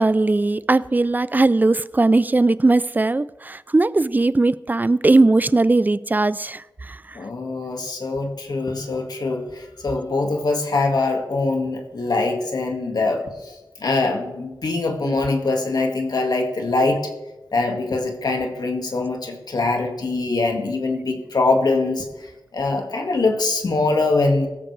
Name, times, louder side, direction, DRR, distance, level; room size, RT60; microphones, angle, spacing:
voice 1, 0.0-7.2 15.0-15.1, right 2 dB, 25° right, 0.4 m, -19 dB
voice 2, 7.2-13.6 13.8-17.0 17.5-22.1 22.5-24.5, left 3 dB, 65° left, 2.0 m, -23 dB
16.5 x 14.0 x 3.3 m
wide cardioid pair, 80°, 8 cm